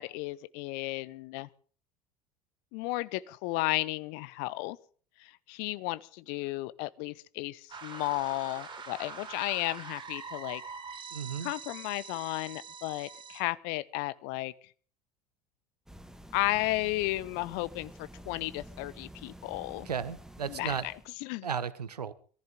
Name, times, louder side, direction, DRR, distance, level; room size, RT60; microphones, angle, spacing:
voice 1, 0.0-1.5 2.7-4.8 5.2-10.6 11.4-14.5 16.3-19.9 20.5-20.9 21.2-21.5, left 19 dB, 55° left, 0.8 m, -34 dB
sound 1, 7.7-13.4, right 5 dB, 25° right, 3.5 m, -44 dB
voice 2, 11.1-11.5 19.8-20.9 21.4-22.1, right 7 dB, 85° right, 0.9 m, -34 dB
sound 2, 15.9-21.1, right 1 dB, 5° right, 1.3 m, -49 dB
22.5 x 14.5 x 3.8 m
figure-of-eight pair, 70°, 20 cm